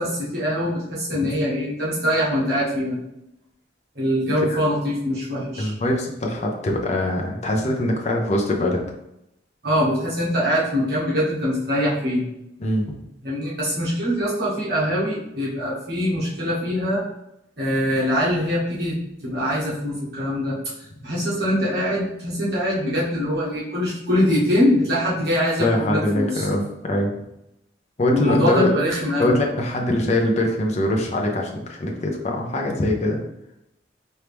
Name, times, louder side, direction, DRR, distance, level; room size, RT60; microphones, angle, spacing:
voice 1, 0.0-3.0 3.9-5.7 9.6-12.2 13.2-17.1 17.6-26.5 28.1-29.4, equal, 60° right, -8 dB, 1.4 m, -23 dB
voice 2, 5.6-8.8 12.6-12.8 25.6-27.1 28.0-28.7 29.2-33.2, left 1 dB, 40° left, 0 dB, 0.7 m, -23 dB
4.5 x 2.7 x 3.4 m, 0.83 s
head